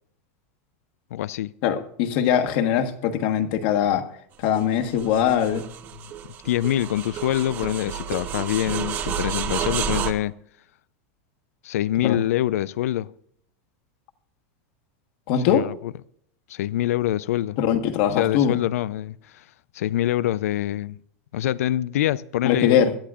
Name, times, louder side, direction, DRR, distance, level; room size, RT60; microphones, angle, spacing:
voice 1, 1.1-1.5 6.4-10.3 11.6-13.1 15.4-15.9 16.5-17.6 18.1-19.4 19.7-21.0 21.3-22.8, left 13 dB, 85° left, 0.5 m, -25 dB
voice 2, 1.6-4.0 4.4-5.7 12.0-12.2 15.3-15.7 17.6-18.5 22.4-22.9, left 9 dB, 45° left, 1.4 m, -21 dB
sound 1, 4.4-10.1, right 8 dB, 25° right, 0.9 m, -30 dB
22.0 x 13.5 x 2.5 m
supercardioid pair, 175°, 8 cm